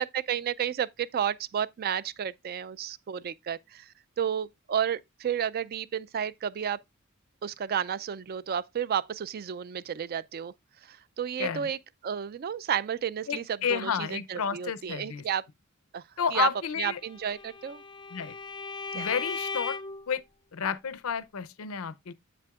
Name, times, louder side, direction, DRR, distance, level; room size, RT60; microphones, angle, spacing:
voice 1, 0.0-3.9 4.2-6.8 7.4-10.5 10.9-11.8 12.0-13.4 13.7-15.4 15.9-16.0 16.3-16.5 16.8-17.8 18.9-19.1, right 8 dB, 45° right, 0.4 m, -31 dB
voice 2, 11.4-11.7 13.3-15.2 16.2-17.0 18.1-18.4 18.9-19.8 20.1-20.2 20.5-22.1, left 7 dB, 85° left, 0.6 m, -31 dB
Bowed string instrument, 17.0-20.1, left 4 dB, 20° left, 0.4 m, -37 dB
7.6 x 7.5 x 2.3 m
head